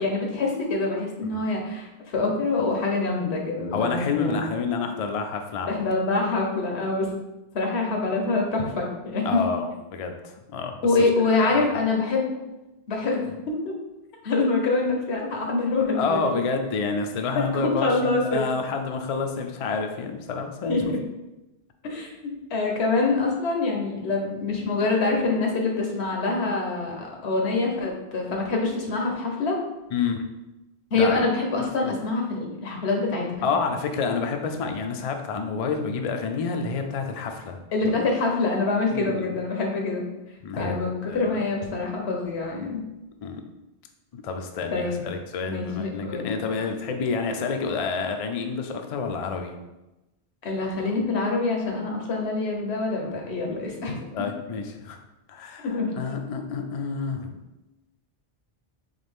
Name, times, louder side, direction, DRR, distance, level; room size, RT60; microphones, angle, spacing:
voice 1, 0.0-4.5 5.7-7.1 7.5-9.4 10.8-12.2 12.9-13.7 14.2-16.3 17.5-18.4 20.7-21.0 21.8-29.6 30.9-33.3 37.7-40.0 40.6-42.8 44.7-45.0 45.4-46.2 50.4-54.0 55.6-56.0, left 3 dB, 85° left, 1 dB, 1.2 m, -25 dB
voice 2, 1.2-1.5 3.7-5.8 6.3-6.4 9.2-10.7 11.4-11.8 15.9-20.9 29.9-30.3 30.9-31.2 31.8-31.9 33.4-37.6 38.9-39.4 40.4-41.3 43.2-43.4 44.1-49.6 54.1-55.0 55.3-57.3, left 5 dB, 50° left, 4 dB, 0.4 m, -29 dB
4.1 x 3.4 x 3.5 m, 1.0 s
omnidirectional pair, 1.1 m